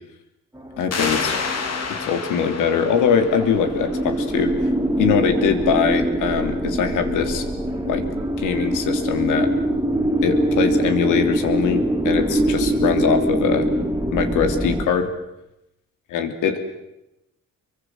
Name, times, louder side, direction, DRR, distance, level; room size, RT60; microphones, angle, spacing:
sound 1, 0.5-14.9, right 1 dB, 10° right, 3.1 m, -23 dB
voice 1, 0.8-1.3 2.0-4.5 5.0-7.4 7.9-8.0 8.4-9.5 10.2-13.7 14.1-15.1 16.1-16.6, left 7 dB, 90° left, 6 dB, 3.1 m, -22 dB
sound 2, 0.9-4.3, left 5 dB, 55° left, 3.4 m, -29 dB
27.0 x 23.5 x 7.7 m, 0.91 s
cardioid pair, 90°, 30 cm